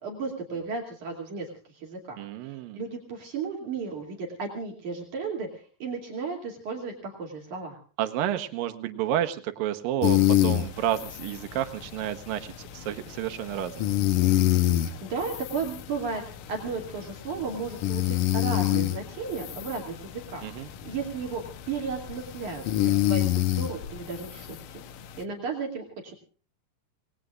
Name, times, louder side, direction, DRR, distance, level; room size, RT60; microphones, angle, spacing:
voice 1, 0.0-7.8 14.8-16.2 16.5-22.6 23.0-24.8 25.2-26.1, right 4 dB, 60° right, 0 dB, 4.1 m, -34 dB
voice 2, 2.2-2.8 8.0-13.9 20.4-20.7, right 11 dB, 90° right, 8 dB, 2.7 m, -30 dB
sound 1, 10.0-25.2, left 13 dB, 75° left, 2.5 m, -28 dB
28.0 x 19.5 x 2.5 m, 0.41 s
omnidirectional pair, 3.9 m